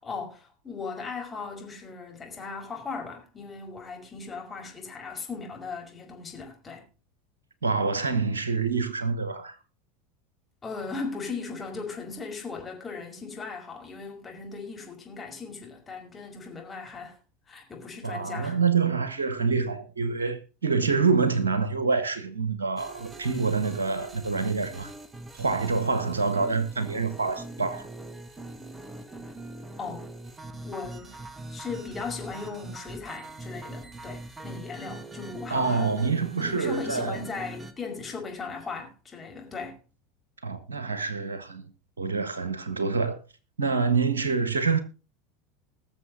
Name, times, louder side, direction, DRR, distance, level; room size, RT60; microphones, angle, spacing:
voice 1, 0.0-6.9 10.6-17.2 17.5-18.6 29.8-30.1 30.6-36.0 36.4-39.8, left 4 dB, 20° left, 5.4 m, -38 dB
voice 2, 7.6-9.6 18.0-24.9 25.4-27.9 35.5-37.2 40.4-41.7 42.0-43.2 43.6-44.8, right 4 dB, 90° right, 1.4 m, -26 dB
sound 1, 22.8-37.7, right 2 dB, 15° right, 2.0 m, -42 dB
20.5 x 7.0 x 3.9 m
hypercardioid pair, 85°, 0 cm